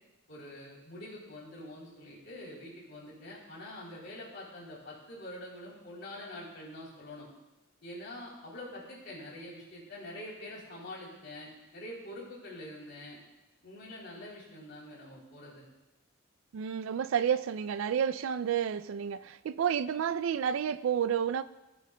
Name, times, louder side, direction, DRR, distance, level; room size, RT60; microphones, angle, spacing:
voice 1, 0.3-7.3 7.8-13.2 13.6-15.7, left 1 dB, 60° left, 3.3 m, -45 dB
voice 2, 16.5-21.4, right 8 dB, 70° right, 0.3 m, -30 dB
16.0 x 7.4 x 2.2 m
head